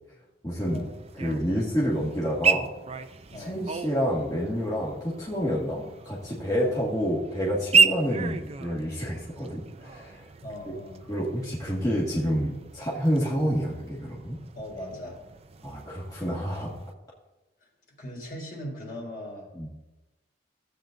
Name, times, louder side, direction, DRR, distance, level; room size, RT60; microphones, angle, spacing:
voice 1, 0.4-0.8 1.1-2.7 3.4-10.2 10.7-10.8 11.1-14.4 15.6-16.7 19.6-19.7, equal, 20° left, -8 dB, 1.9 m, -28 dB
sound 1, 0.6-16.9, right 5 dB, 35° right, 0.5 m, -32 dB
voice 2, 10.4-11.0 14.5-15.2 17.6-19.5, left 1 dB, 50° left, -2 dB, 3.4 m, -39 dB
16.0 x 8.3 x 2.6 m, 1.1 s
head